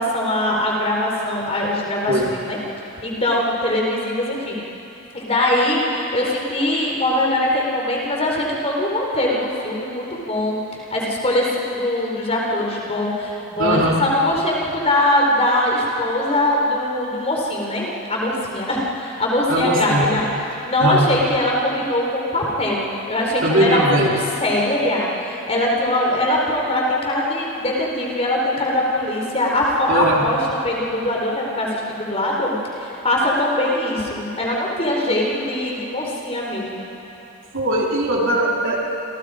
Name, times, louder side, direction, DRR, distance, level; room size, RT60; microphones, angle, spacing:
voice 1, 0.0-2.6 3.0-4.6 5.1-10.6 10.9-20.3 20.6-36.9, left 1 dB, 30° left, -2 dB, 4.1 m, -22 dB
voice 2, 13.6-14.0 19.5-20.0 20.8-21.1 23.4-24.1 29.9-30.2 37.5-38.9, right 1 dB, 55° right, -3 dB, 3.6 m, -20 dB
28.5 x 28.0 x 5.0 m, 3.0 s
head